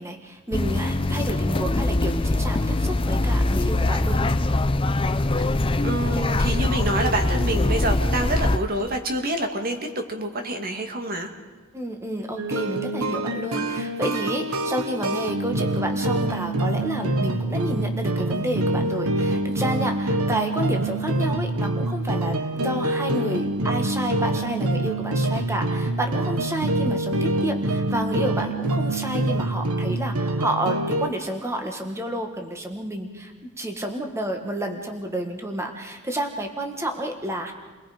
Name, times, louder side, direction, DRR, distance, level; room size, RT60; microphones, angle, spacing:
voice 1, 0.0-4.2 11.7-37.5, right 1 dB, 10° right, 3 dB, 1.7 m, -30 dB
sound 1, 0.5-8.6, left 2 dB, 25° left, 0.6 m, -23 dB
voice 2, 5.8-11.3, right 1 dB, 40° right, 4 dB, 2.2 m, -27 dB
sound 2, 12.4-31.1, right 1 dB, 75° right, 1.2 m, -25 dB
30.0 x 21.0 x 5.1 m, 1.3 s
head